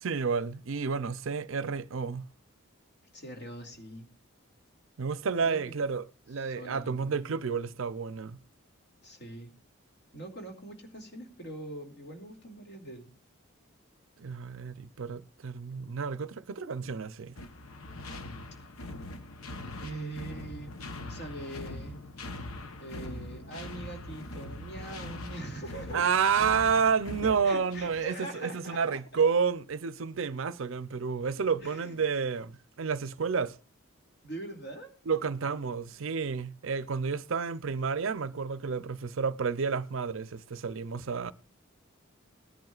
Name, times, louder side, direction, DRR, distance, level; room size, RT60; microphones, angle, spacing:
voice 1, 0.0-2.3 5.0-8.4 14.2-17.3 25.9-33.5 35.1-41.3, right 5 dB, 70° right, 0.5 m, -30 dB
voice 2, 3.1-4.1 5.4-5.8 6.4-7.2 9.0-9.5 10.1-13.1 19.8-20.7 21.0-22.0 22.8-26.0 27.2-29.0 31.6-32.0 34.2-34.9, right 1 dB, 50° left, 2.5 m, -42 dB
sound 1, 17.4-28.1, left 2 dB, 80° left, 1.0 m, -42 dB
19.0 x 11.0 x 2.4 m
head